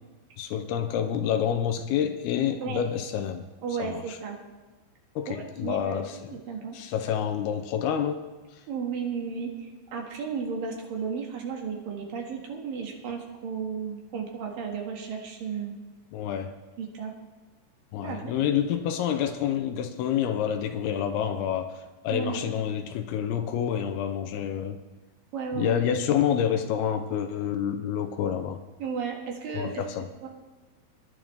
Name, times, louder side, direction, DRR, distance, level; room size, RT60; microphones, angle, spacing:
voice 1, 0.4-3.5 3.8-4.2 5.2-6.4 6.7-8.2 8.5-8.6 16.1-16.5 17.9-24.8 25.5-28.6 29.5-30.1, left 9 dB, 85° left, 7 dB, 2.2 m, -28 dB
voice 2, 3.6-4.4 5.4-6.0 6.5-6.8 8.7-9.5 9.9-15.7 16.8-17.1 18.0-18.3 22.1-22.4 25.3-25.8 28.8-29.7 30.2-30.3, right 6 dB, 60° right, 0 dB, 3.0 m, -33 dB
22.5 x 10.5 x 3.4 m, 1.2 s
omnidirectional pair, 5.3 m